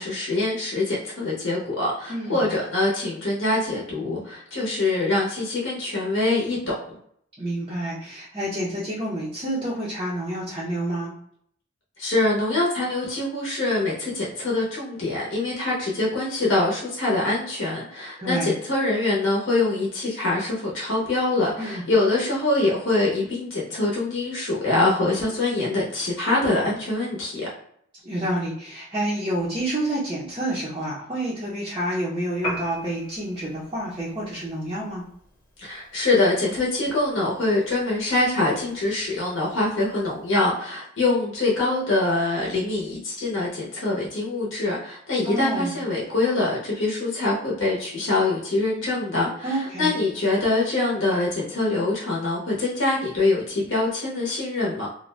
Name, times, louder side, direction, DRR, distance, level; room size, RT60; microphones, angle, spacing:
voice 1, 0.0-7.0 12.0-27.5 35.6-54.9, left 2 dB, 55° left, -4 dB, 0.7 m, -24 dB
voice 2, 2.1-2.4 7.4-11.1 18.2-18.6 21.6-21.8 28.0-35.0 45.2-45.7 49.4-50.0, right 1 dB, 20° right, -8 dB, 0.5 m, -28 dB
Piano, 32.3-40.4, equal, 20° left, 0.9 m, -42 dB
2.4 x 2.1 x 3.1 m, 0.66 s
head